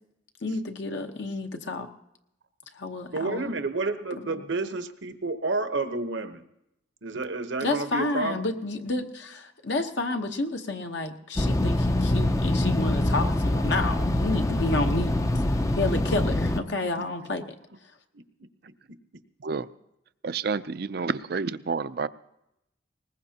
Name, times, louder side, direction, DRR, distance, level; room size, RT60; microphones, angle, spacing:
voice 1, 0.4-1.9 2.7-3.6 4.4-4.5 7.6-15.2 15.8-17.6, left 2 dB, 65° left, 4 dB, 1.0 m, -30 dB
voice 2, 3.1-6.4 7.0-8.4, right 3 dB, 75° right, 8 dB, 1.0 m, -30 dB
sound 1, 11.4-16.6, left 1 dB, 15° left, 0.5 m, -24 dB
voice 3, 20.2-22.1, right 4 dB, 55° right, 14 dB, 0.5 m, -29 dB
21.0 x 19.5 x 2.9 m, 0.84 s
head